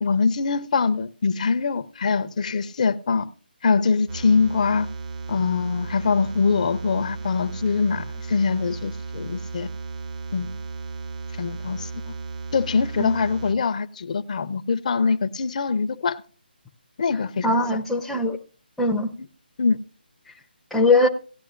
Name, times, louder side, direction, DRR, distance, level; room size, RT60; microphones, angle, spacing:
voice 1, 0.0-3.3 3.6-4.9 5.3-9.7 10.3-10.5 11.4-12.1 12.5-16.2 17.0-17.8 19.2-19.3 19.6-19.8, left 4 dB, 45° left, 0.6 m, -23 dB
sound 1, 4.1-13.5, right 4 dB, 45° right, 0.9 m, -35 dB
voice 2, 17.4-18.4 18.8-19.1 20.7-21.1, left 2 dB, ahead, 0.6 m, -20 dB
17.0 x 10.5 x 2.5 m
figure-of-eight pair, 150°, 6 cm